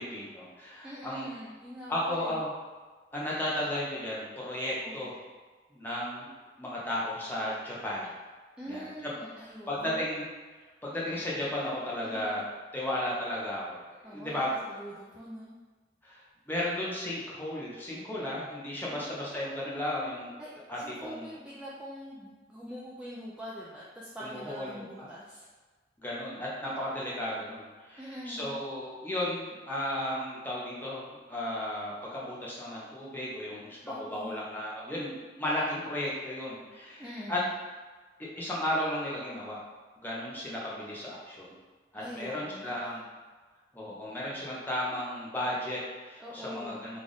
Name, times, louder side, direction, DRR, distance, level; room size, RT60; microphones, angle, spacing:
voice 1, 0.0-1.3 1.9-2.5 3.1-5.2 5.7-6.3 6.6-8.1 8.7-8.9 9.7-10.3 10.8-12.4 12.7-14.5 16.0-20.3 20.7-21.3 24.2-25.1 26.0-37.4 38.2-39.6 40.0-41.5 41.9-43.0 43.7-47.0, left 1 dB, 10° left, -6 dB, 0.7 m, -34 dB
voice 2, 0.8-2.4 4.6-5.1 8.6-10.1 12.0-12.3 14.0-15.5 18.9-19.3 20.4-25.4 28.0-28.5 33.8-34.4 37.0-37.5 42.0-43.0 46.2-46.8, equal, 5° right, -7 dB, 0.3 m, -44 dB
3.3 x 2.4 x 3.9 m, 1.4 s
head